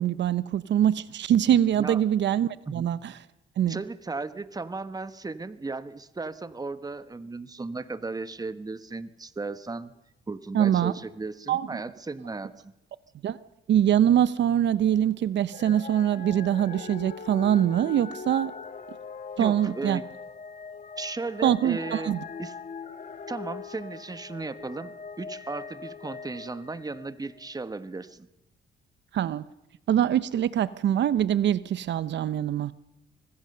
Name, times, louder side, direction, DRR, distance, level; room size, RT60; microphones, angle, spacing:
voice 1, 0.0-3.1 3.6-3.8 10.5-10.9 11.5-11.7 13.2-13.4 13.7-18.5 19.4-20.0 21.4-22.2 29.1-29.5 29.9-32.7, right 10 dB, 65° right, 15 dB, 0.8 m, -23 dB
voice 2, 3.7-9.9 10.3-12.7 19.4-20.0 21.0-22.1 22.4-22.5 23.3-28.3, right 3 dB, 20° right, 12 dB, 1.3 m, -36 dB
sound 1, 15.5-27.5 28.1-28.2, left 5 dB, 40° left, 1.4 m, -41 dB
25.0 x 19.5 x 6.8 m, 0.92 s
cardioid pair, 90°, 20 cm